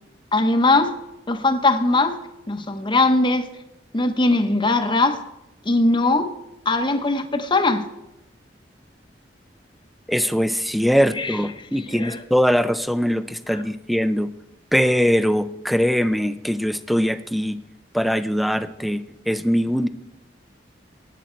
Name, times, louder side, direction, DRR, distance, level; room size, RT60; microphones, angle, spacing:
voice 1, 0.3-0.9 1.3-2.2 2.5-3.5 3.9-5.2 5.6-6.3 6.7-7.9 11.2-11.4 11.9-12.2, left 2 dB, 25° left, 8 dB, 0.9 m, -20 dB
voice 2, 10.1-14.3 14.7-17.6 17.9-19.9, equal, ahead, 12 dB, 0.4 m, -21 dB
18.0 x 7.8 x 4.4 m, 0.89 s
head